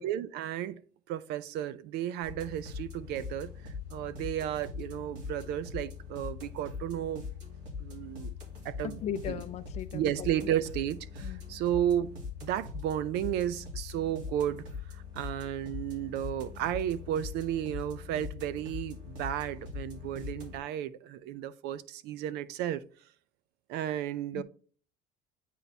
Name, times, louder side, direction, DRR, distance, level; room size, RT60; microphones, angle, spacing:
voice 1, 0.0-7.2 7.8-8.3 8.6-9.4 9.9-22.8 23.7-24.4, right 11 dB, 65° right, 0.5 m, -33 dB
sound 1, 2.2-20.6, left 5 dB, 80° right, 2.5 m, -42 dB
voice 2, 9.0-10.0 11.2-11.4 24.3-24.4, left 9 dB, 40° left, 0.4 m, -36 dB
8.3 x 4.1 x 3.4 m
cardioid pair, 165°, 18 cm